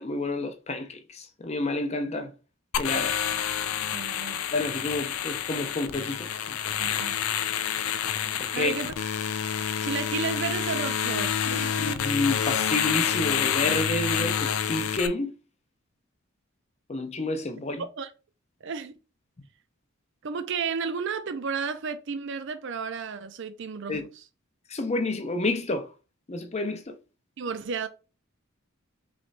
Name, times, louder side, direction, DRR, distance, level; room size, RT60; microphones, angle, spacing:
voice 1, 0.0-2.3 2.8-3.2 4.5-6.6 8.4-8.7 11.5-15.3 16.9-17.8 19.4-19.5 23.9-24.1 24.7-25.9 26.3-27.0, left 2 dB, 30° left, 0.6 m, -30 dB
sound 1, 2.7-15.1, left 8 dB, 85° left, 0.4 m, -28 dB
voice 2, 3.9-4.4 6.8-7.2 8.5-8.9 9.8-11.8 18.0-18.1 18.6-18.9 20.2-24.0 27.4-27.9, right 5 dB, 60° right, 0.5 m, -32 dB
3.3 x 3.0 x 4.0 m
head